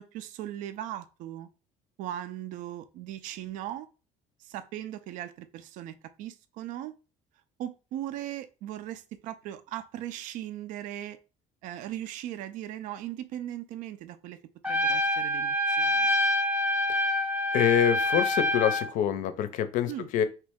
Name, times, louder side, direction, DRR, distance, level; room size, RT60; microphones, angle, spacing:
voice 1, 0.0-1.5 2.0-3.9 4.4-6.9 7.6-11.2 11.6-14.4 14.7-16.1 19.9-20.1, right 12 dB, 70° right, 11 dB, 0.4 m, -38 dB
Trumpet, 14.6-18.9, left 1 dB, 5° right, 0.5 m, -26 dB
voice 2, 17.5-20.2, left 10 dB, 70° left, 11 dB, 0.5 m, -26 dB
3.1 x 2.8 x 3.4 m, 0.32 s
cardioid pair, 130°, 14 cm